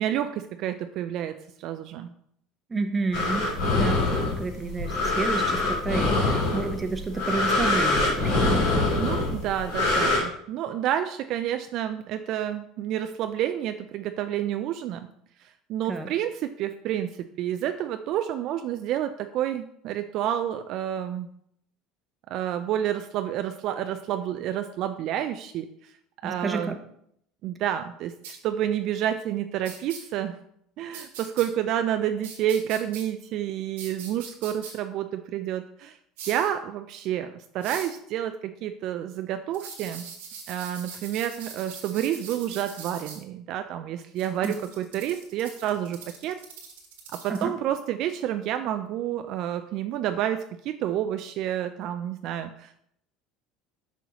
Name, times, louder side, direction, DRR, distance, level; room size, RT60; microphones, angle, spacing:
voice 1, 0.0-2.1 9.0-15.1 15.7-17.1 17.4-21.3 22.3-25.9 26.2-26.8 27.4-30.4 30.8-36.0 36.3-40.1 40.5-46.4 47.1-52.7, right 11 dB, 60° right, 8 dB, 0.3 m, -29 dB
voice 2, 2.7-3.5 3.7-8.7 15.9-16.1 26.2-26.7 44.4-44.6 47.3-47.5, right 3 dB, 25° right, 7 dB, 0.8 m, -30 dB
sound 1, 3.1-10.2, left 2 dB, 85° left, 2.5 m, -24 dB
sound 2, 28.2-28.3 29.6-30.0 30.9-31.5 32.2-33.0 33.8-34.7 36.2-36.5 37.6-37.9 39.5-43.2 44.2-47.4, right 6 dB, 85° right, 1.6 m, -42 dB
6.2 x 5.6 x 2.9 m, 0.69 s
supercardioid pair, 90°, 0 cm